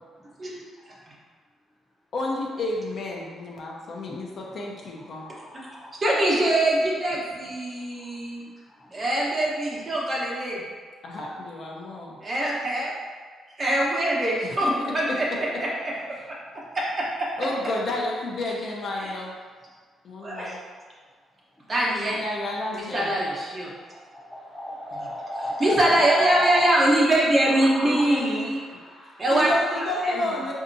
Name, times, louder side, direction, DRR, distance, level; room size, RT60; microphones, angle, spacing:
voice 1, 2.1-5.3 11.0-12.2 14.4-14.7 17.4-19.3 20.0-20.6 22.1-23.1 27.8-28.5 29.3-30.5, left 2 dB, 55° left, -2 dB, 0.6 m, -31 dB
voice 2, 3.8-4.2 5.2-6.0 23.9-26.7 27.6-28.0 28.7-29.3, left 1 dB, 15° left, -4 dB, 0.9 m, -33 dB
voice 3, 6.0-8.4 8.9-10.6 12.2-12.9 13.6-14.7 14.9-15.3 15.6-15.9 16.7-17.3 19.0-19.1 20.2-20.6 21.7-22.2 22.7-23.7 24.9-25.0 25.6-28.6 29.2-29.5 30.0-30.1, right 1 dB, 35° right, -5 dB, 1.0 m, -23 dB
4.3 x 2.7 x 2.6 m, 1.5 s
cardioid pair, 90°, 0 cm